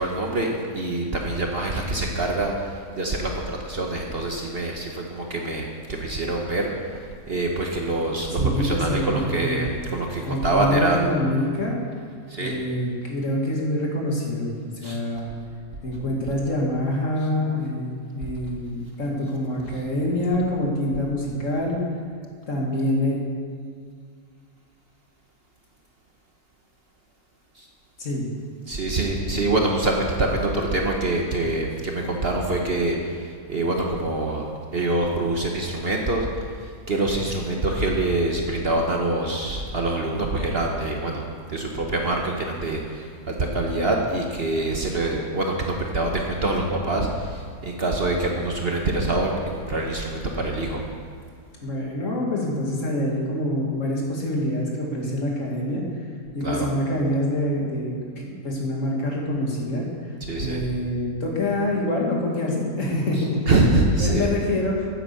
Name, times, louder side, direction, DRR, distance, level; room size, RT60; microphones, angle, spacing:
voice 1, 0.0-11.0 12.3-12.7 14.8-15.0 27.5-27.7 28.7-50.8 56.4-56.7 60.2-60.7 63.2-64.3, right 2 dB, 45° right, 0 dB, 1.2 m, -25 dB
voice 2, 8.4-9.7 10.3-11.8 12.4-15.3 15.8-21.8 22.5-23.2 28.0-28.3 51.6-55.8 56.3-59.8 60.4-63.4 63.9-64.9, left 1 dB, 55° left, -2 dB, 2.3 m, -26 dB
9.7 x 9.2 x 6.8 m, 2.2 s
omnidirectional pair, 1.7 m